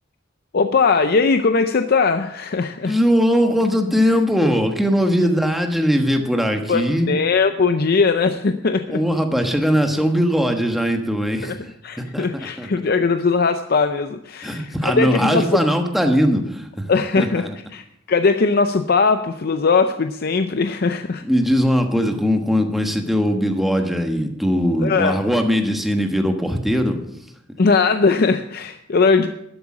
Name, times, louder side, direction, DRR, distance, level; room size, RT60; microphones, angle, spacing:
voice 1, 0.5-3.0 6.7-9.0 11.4-11.6 11.8-15.6 16.9-21.2 24.8-25.2 27.6-29.3, left 4 dB, 55° left, 8 dB, 0.5 m, -19 dB
voice 2, 2.8-7.1 8.9-11.6 12.0-12.7 14.4-16.9 17.2-17.5 21.2-27.1, equal, ahead, 4 dB, 1.3 m, -20 dB
12.0 x 8.0 x 6.1 m, 0.77 s
head